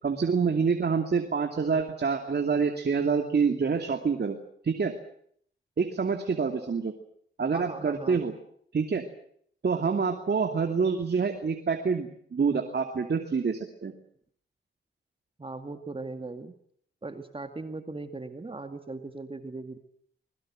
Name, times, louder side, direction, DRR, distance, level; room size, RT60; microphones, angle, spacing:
voice 1, 0.0-4.4 4.6-4.9 5.8-6.9 7.4-8.3 8.7-9.1 9.6-13.9, right 5 dB, 55° right, 6 dB, 2.7 m, -27 dB
voice 2, 7.5-8.2 15.4-16.5 17.0-19.8, right 3 dB, 25° right, 8 dB, 2.2 m, -38 dB
24.5 x 22.0 x 7.7 m, 0.65 s
cardioid pair, 65°, 20 cm